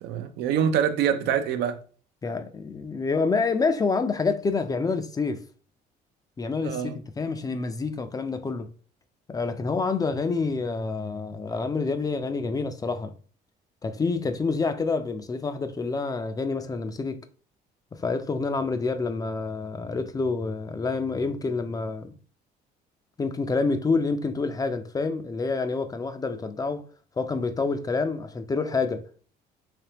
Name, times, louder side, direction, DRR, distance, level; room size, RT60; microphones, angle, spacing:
voice 1, 0.0-1.8 6.6-6.9, right 8 dB, 80° right, 0.6 m, -25 dB
voice 2, 2.2-5.4 6.4-8.7 9.3-13.1 13.8-17.3 17.9-22.1 23.2-26.9 27.2-29.1, left 4 dB, 20° left, 0.4 m, -27 dB
3.4 x 3.3 x 2.8 m
cardioid pair, 110°, 17 cm